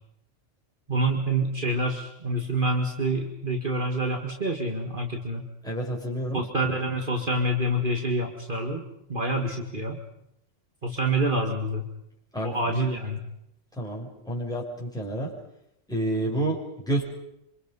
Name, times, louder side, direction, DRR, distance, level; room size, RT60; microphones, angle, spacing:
voice 1, 0.9-5.4 6.3-8.8 9.1-10.0 10.8-11.8 12.4-13.2, right 1 dB, 45° right, 2 dB, 2.1 m, -27 dB
voice 2, 5.6-6.4 12.3-12.9 13.8-15.3 15.9-17.0, right 1 dB, 5° left, -1 dB, 6.6 m, -29 dB
27.5 x 25.5 x 5.5 m, 0.78 s
omnidirectional pair, 1.2 m